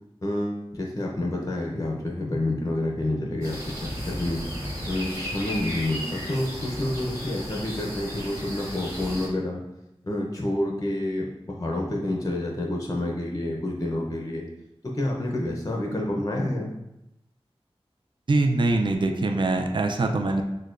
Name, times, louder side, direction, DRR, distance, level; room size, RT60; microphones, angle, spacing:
voice 1, 0.2-4.4 4.9-9.6 10.0-14.5 14.8-16.7, left 1 dB, 35° left, 0 dB, 0.6 m, -28 dB
sound 1, 3.4-9.3, equal, 30° right, 1.5 m, -34 dB
voice 2, 18.3-20.4, right 2 dB, 50° right, 4 dB, 0.4 m, -23 dB
6.4 x 2.1 x 2.5 m, 0.87 s
wide cardioid pair, 50°, 10 cm